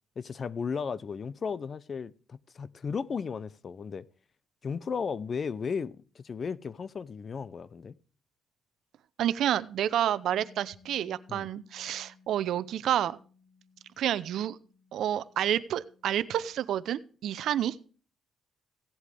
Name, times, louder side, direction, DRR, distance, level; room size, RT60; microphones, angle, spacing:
voice 1, 0.2-4.1 4.6-8.0 11.3-11.5, left 6 dB, 45° left, 0.7 m, -35 dB
voice 2, 9.2-13.2 14.0-14.6 14.9-17.8, right 11 dB, 75° right, 0.7 m, -29 dB
Bass guitar, 10.3-16.5, left 5 dB, 85° left, 6.9 m, -60 dB
16.5 x 8.2 x 3.4 m
cardioid pair, 90°, 0 cm